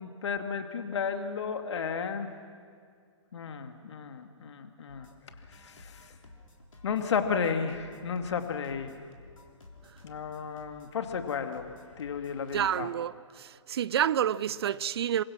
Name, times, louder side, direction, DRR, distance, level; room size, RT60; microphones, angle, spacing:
voice 1, 0.0-2.3 3.3-5.1 5.5-6.1 6.8-8.9 10.0-11.7 12.0-12.9, left 6 dB, 60° left, 2.3 m, -33 dB
sound 1, 4.9-12.8, left 2 dB, 85° left, 3.6 m, -53 dB
voice 2, 12.5-13.1 13.4-15.2, right 10 dB, 50° right, 0.6 m, -28 dB
28.0 x 23.5 x 6.1 m
figure-of-eight pair, 125°, 17 cm